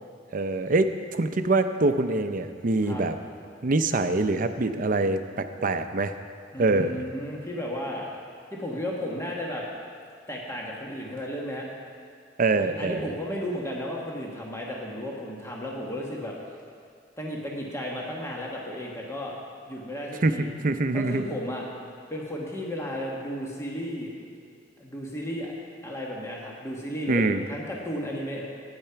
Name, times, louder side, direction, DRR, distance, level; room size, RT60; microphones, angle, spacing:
voice 1, 0.3-3.1 3.6-6.1 6.6-7.0 12.4-13.0 20.2-20.4 20.6-21.2 27.1-27.4, right 2 dB, 45° right, 9 dB, 0.6 m, -24 dB
voice 2, 6.5-8.1 8.5-9.6 10.3-11.7 12.6-16.3 17.2-19.3 19.7-20.5 20.9-21.7 22.1-24.1 24.8-25.5 25.8-28.5, equal, 15° left, -3 dB, 1.4 m, -34 dB
12.0 x 9.8 x 5.8 m, 2.2 s
head